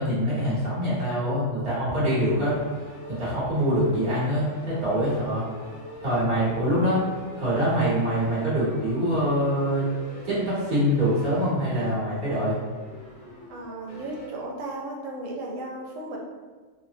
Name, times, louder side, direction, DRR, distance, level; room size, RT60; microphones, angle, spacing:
voice 1, 0.0-2.6 3.1-5.4 6.0-7.0 7.4-9.8 10.2-12.5, equal, 25° right, -11 dB, 1.4 m, -24 dB
sound 1, 2.1-14.3, left 1 dB, 70° left, 1.0 m, -44 dB
voice 2, 13.5-16.2, right 2 dB, 90° right, -1 dB, 1.0 m, -35 dB
2.7 x 2.1 x 2.6 m, 1.4 s
omnidirectional pair, 1.3 m